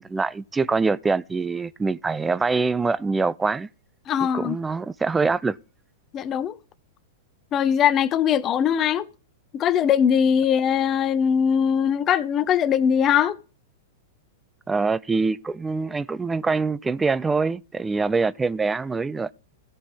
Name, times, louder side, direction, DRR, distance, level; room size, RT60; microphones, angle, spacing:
voice 1, 0.0-3.7 4.3-5.6 14.7-19.3, right 4 dB, 15° right, 0.4 m, -24 dB
voice 2, 4.1-4.6 6.1-6.6 7.5-9.1 9.5-13.4, left 8 dB, 30° left, 0.6 m, -21 dB
16.5 x 5.5 x 4.2 m
hypercardioid pair, 105°, 0 cm